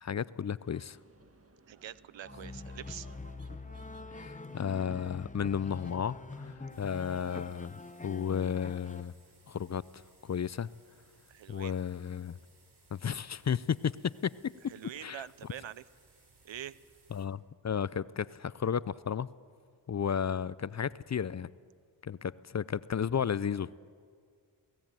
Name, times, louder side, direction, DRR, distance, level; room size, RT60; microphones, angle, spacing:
voice 1, 0.0-1.0 4.1-9.1 9.5-9.9 10.2-10.7 11.5-12.4 12.9-14.7 15.0-15.3 17.1-19.3 19.9-21.5 22.0-23.8, left 7 dB, 40° left, 0.5 m, -33 dB
sound 1, 0.6-7.6, right 2 dB, 30° right, 1.5 m, -60 dB
voice 2, 1.7-3.1 11.3-11.8 14.7-15.8 16.4-16.8, right 11 dB, 75° right, 0.7 m, -45 dB
sound 2, 2.2-9.0, left 3 dB, 15° left, 0.8 m, -45 dB
sound 3, 6.7-17.3, right 3 dB, 60° right, 3.7 m, -64 dB
18.0 x 16.0 x 9.0 m
cardioid pair, 45°, 46 cm